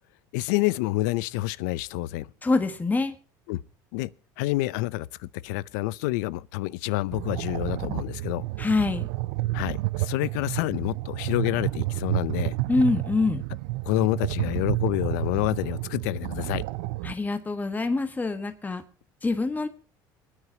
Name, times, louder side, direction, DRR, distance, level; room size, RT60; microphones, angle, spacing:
voice 1, 0.3-2.3 3.5-3.6 3.9-4.1 4.4-8.4 9.5-12.5 13.9-16.6, left 18 dB, 85° left, 0.6 m, -28 dB
voice 2, 2.4-3.1 8.6-9.1 12.7-13.4 17.0-18.8 19.2-19.7, left 3 dB, 20° left, 1.5 m, -25 dB
sound 1, 7.1-17.1, right 19 dB, 80° right, 0.5 m, -30 dB
27.0 x 9.9 x 2.9 m
supercardioid pair, 90°, 9 cm